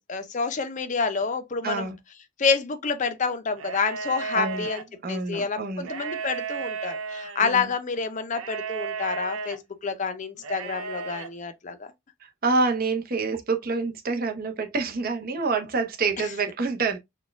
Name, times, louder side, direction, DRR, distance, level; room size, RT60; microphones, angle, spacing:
voice 1, 0.1-1.9 2.4-4.8 5.1-11.9, left 5 dB, 35° left, 0.5 m, -28 dB
voice 2, 1.6-2.0 4.3-4.7 5.0-5.9 7.4-7.7 12.2-17.0, right 4 dB, 45° right, 0.7 m, -27 dB
sound 1, 3.5-4.8 5.8-7.5 8.3-9.6 10.4-11.3, right 5 dB, 80° right, 0.6 m, -34 dB
4.1 x 2.3 x 3.3 m
head